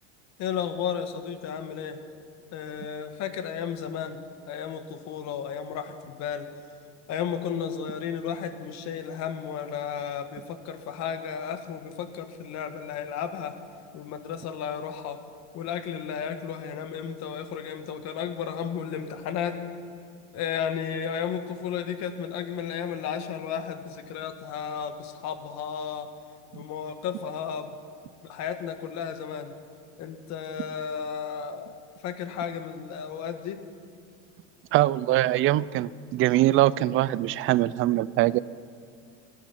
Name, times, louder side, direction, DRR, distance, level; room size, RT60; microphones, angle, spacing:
voice 1, 0.4-2.0 2.5-4.2 4.5-6.5 7.1-13.5 13.9-15.2 15.5-19.6 20.3-26.1 26.5-27.8 28.2-29.5 30.0-33.6, left 7 dB, 50° left, 8 dB, 1.5 m, -33 dB
voice 2, 34.7-38.4, right 15 dB, 40° right, 19 dB, 0.4 m, -23 dB
26.5 x 9.3 x 5.8 m, 2.3 s
supercardioid pair, 135°, 35 cm